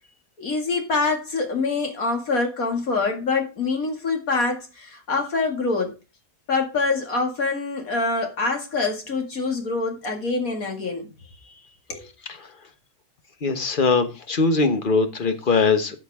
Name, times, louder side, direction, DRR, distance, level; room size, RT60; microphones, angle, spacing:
voice 1, 0.4-6.0 6.5-11.1 11.9-12.1, left 3 dB, 80° left, 2.7 m, -25 dB
voice 2, 13.4-16.0, left 4 dB, 40° left, 1.2 m, -21 dB
13.0 x 6.6 x 3.6 m
omnidirectional pair, 1.5 m